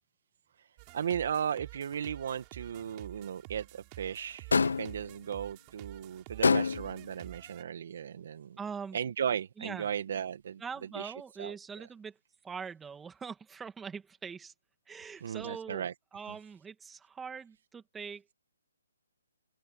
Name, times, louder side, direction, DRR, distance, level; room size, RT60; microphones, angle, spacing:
sound 1, 0.8-7.6, right 32 dB, 25° right, 5.0 m, -50 dB
voice 1, 0.9-8.6 8.9-10.6 10.9-11.6 15.2-15.9 16.3-16.4, right 8 dB, 55° right, 1.7 m, -36 dB
sound 2, 4.5-5.0 6.4-7.0, left 4 dB, 80° left, 0.9 m, -26 dB
voice 2, 8.6-9.0 9.6-9.9 10.6-12.2 12.4-14.5 14.9-15.9 16.1-18.2, right 6 dB, 10° right, 2.4 m, -42 dB
open air
hypercardioid pair, 150°, 0 cm